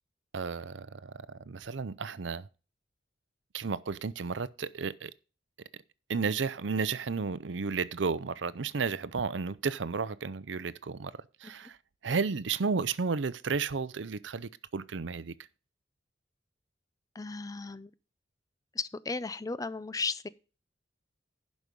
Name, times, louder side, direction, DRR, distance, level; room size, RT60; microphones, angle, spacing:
voice 1, 0.3-2.5 3.5-5.1 6.1-11.1 11.4-11.8 12.0-15.3, right 5 dB, 90° right, 0.6 m, -33 dB
voice 2, 17.1-17.9 18.7-20.3, left 4 dB, 20° left, 0.4 m, -35 dB
11.0 x 5.4 x 5.2 m
head